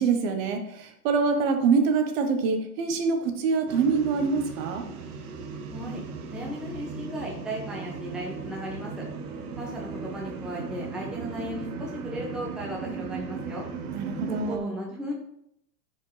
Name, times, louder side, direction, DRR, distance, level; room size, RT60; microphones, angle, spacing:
voice 1, 0.0-4.9 13.9-14.7, right 5 dB, 35° right, 6 dB, 1.0 m, -25 dB
sound 1, 3.7-14.6, right 5 dB, 60° right, 1.3 m, -37 dB
voice 2, 5.7-6.0 6.3-9.0 9.6-13.7 14.3-15.1, equal, ahead, -3 dB, 0.8 m, -36 dB
10.0 x 4.7 x 3.2 m, 0.75 s
hypercardioid pair, 145°, 50 cm